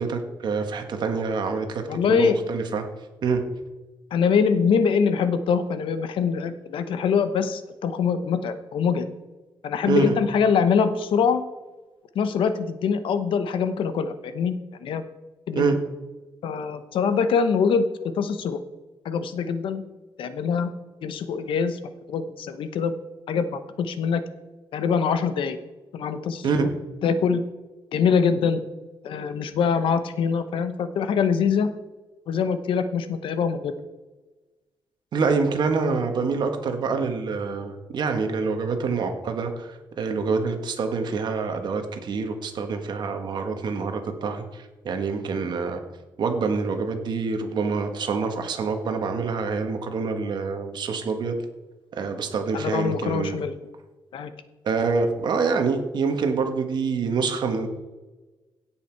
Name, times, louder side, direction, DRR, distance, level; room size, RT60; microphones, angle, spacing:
voice 1, 0.0-2.8 3.2-3.4 9.9-10.1 15.5-15.8 26.4-26.7 35.1-45.8 46.2-51.4 52.0-53.4 54.6-57.7, right 4 dB, 55° right, 6 dB, 1.5 m, -26 dB
voice 2, 1.9-2.4 4.1-9.1 9.6-11.4 12.1-15.0 15.5-15.6 16.4-18.6 19.0-19.8 20.2-20.7 21.0-21.8 22.1-22.9 23.3-24.2 24.7-25.6 25.9-26.7 27.0-27.4 27.9-28.6 29.0-31.7 32.3-33.7 52.5-53.5 54.1-54.3, left 6 dB, 75° left, 11 dB, 0.9 m, -23 dB
16.5 x 5.8 x 4.6 m, 1.2 s
wide cardioid pair, 150°, 9 cm